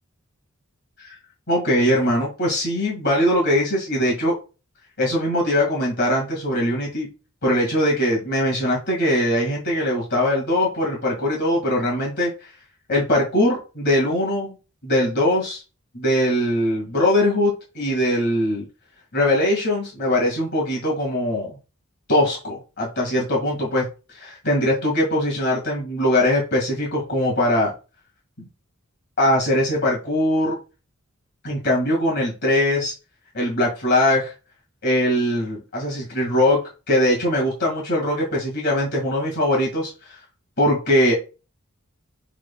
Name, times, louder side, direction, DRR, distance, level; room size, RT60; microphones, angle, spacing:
voice 1, 1.5-4.3 5.0-7.1 7.4-12.3 12.9-14.5 14.8-15.6 15.9-18.7 19.1-21.5 22.1-23.9 24.1-27.7 28.4-28.5 29.2-30.6 31.4-32.9 33.3-34.3 34.8-40.1 40.6-41.1, left 1 dB, 55° left, -2 dB, 1.8 m, -21 dB
6.0 x 3.8 x 2.2 m, 0.31 s
head